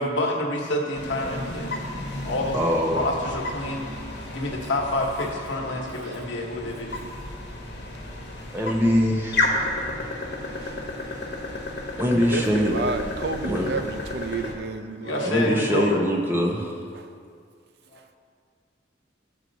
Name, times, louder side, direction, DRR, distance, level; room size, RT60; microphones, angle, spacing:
voice 1, 0.0-1.8 2.2-2.6 2.9-3.9 4.3-6.9 15.0-16.0 17.9-18.0, left 1 dB, 80° left, -1 dB, 1.1 m, -28 dB
sound 1, 0.9-14.5, left 2 dB, 60° left, 1.2 m, -32 dB
voice 2, 2.5-3.0 8.5-9.5 12.0-12.7 13.4-13.7 15.2-16.8, equal, 10° right, -1 dB, 0.7 m, -23 dB
voice 3, 12.1-15.4 16.9-17.1, right 3 dB, 55° right, 8 dB, 0.4 m, -31 dB
12.0 x 4.6 x 4.0 m, 2.2 s
head